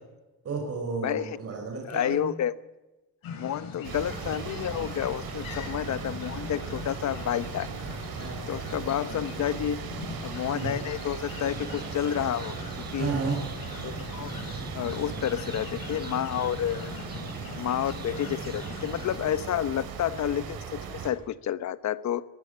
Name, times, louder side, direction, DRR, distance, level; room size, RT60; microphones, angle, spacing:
voice 1, 0.4-2.3 8.2-8.5 10.5-10.7 13.0-13.4, right 4 dB, 40° right, 2 dB, 5.1 m, -32 dB
voice 2, 1.0-1.4 1.9-2.5 3.4-7.7 8.5-9.8 10.2-13.1 13.8-14.3 14.7-16.9 17.6-22.2, left 10 dB, 50° left, 15 dB, 1.0 m, -30 dB
sound 1, 3.2-19.4, left 5 dB, 75° left, 6.4 m, -41 dB
sound 2, 3.8-21.1, right 7 dB, 80° right, 4.7 m, -38 dB
sound 3, 11.3-19.2, right 5 dB, 25° right, 1.7 m, -45 dB
22.5 x 15.0 x 10.0 m, 1.1 s
cardioid pair, 175°, 35 cm